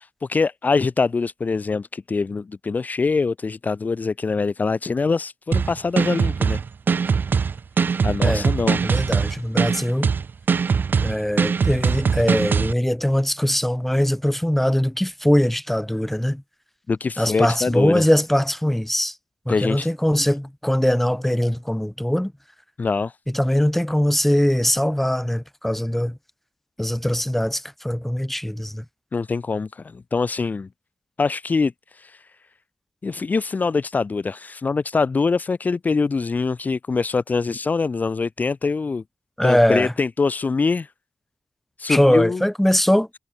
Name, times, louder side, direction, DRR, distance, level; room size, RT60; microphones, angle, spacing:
voice 1, 0.2-6.6 8.0-8.8 16.9-18.0 19.5-19.9 22.8-23.2 29.1-30.7 31.2-32.4 33.0-39.0 39.4-40.9 41.8-42.4, left 4 dB, 40° left, 0.8 m, -24 dB
sound 1, 5.5-12.7, right 5 dB, 55° right, 0.4 m, -21 dB
voice 2, 8.8-10.1 11.0-16.4 17.2-19.1 19.4-22.3 23.3-26.2 26.8-28.8 39.4-39.9 41.9-43.1, equal, 5° left, 5.2 m, -21 dB
cardioid pair, 75°, 4 cm